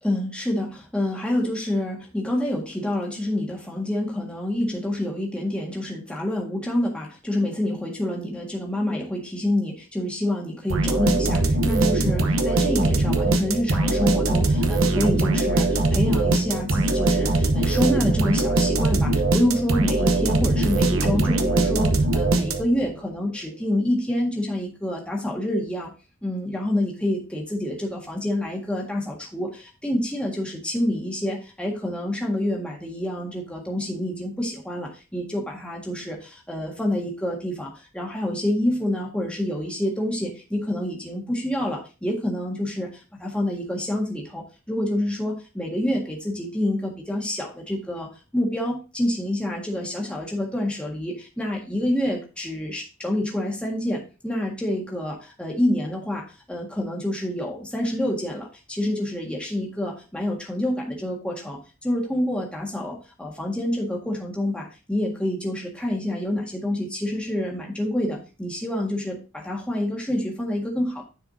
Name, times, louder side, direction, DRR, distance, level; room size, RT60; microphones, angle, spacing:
voice 1, 0.0-25.9 26.2-71.0, left 1 dB, 5° left, -2 dB, 1.6 m, -27 dB
sound 1, 10.7-22.9, right 2 dB, 70° right, 0.9 m, -21 dB
9.5 x 4.8 x 2.7 m, 0.32 s
head